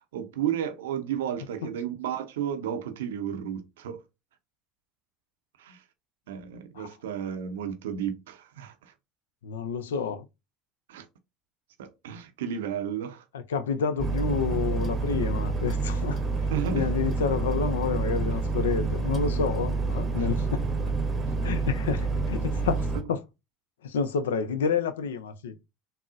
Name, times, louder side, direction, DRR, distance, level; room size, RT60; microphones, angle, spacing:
voice 1, 0.0-4.0 5.6-5.8 6.3-8.9 10.9-11.1 11.8-13.2 16.5-16.9 20.2-20.3, right 9 dB, 80° right, 0.5 m, -33 dB
voice 2, 9.4-10.3 13.3-16.2 16.7-20.6 21.2-23.2 23.8-25.5, left 6 dB, 85° left, 0.4 m, -29 dB
sound 1, 14.0-23.0, right 3 dB, 35° right, 0.7 m, -28 dB
3.7 x 2.0 x 2.4 m
hypercardioid pair, 75°, 0 cm